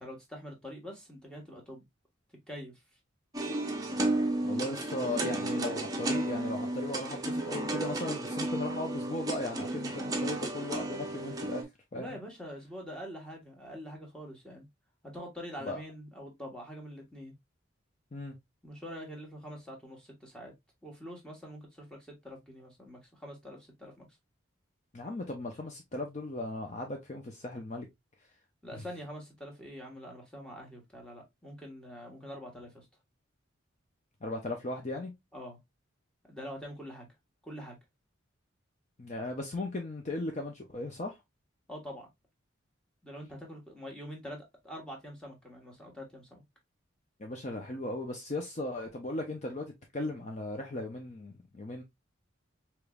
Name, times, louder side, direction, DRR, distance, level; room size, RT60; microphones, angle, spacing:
voice 1, 0.0-1.8 2.5-2.8 11.9-14.6 15.0-17.3 18.6-20.5 20.8-24.1 28.6-32.9 35.3-35.6 36.3-37.1 37.4-37.8 41.7-42.1 43.0-46.4, equal, 5° left, 1.3 m, -45 dB
sound 1, 3.3-11.6, right 2 dB, 20° right, 0.6 m, -33 dB
voice 2, 4.4-11.7 11.9-12.2 15.6-15.8 18.1-18.4 24.9-27.9 34.2-35.1 39.0-41.2 47.2-51.8, left 2 dB, 35° left, 0.6 m, -37 dB
5.0 x 3.0 x 2.2 m
head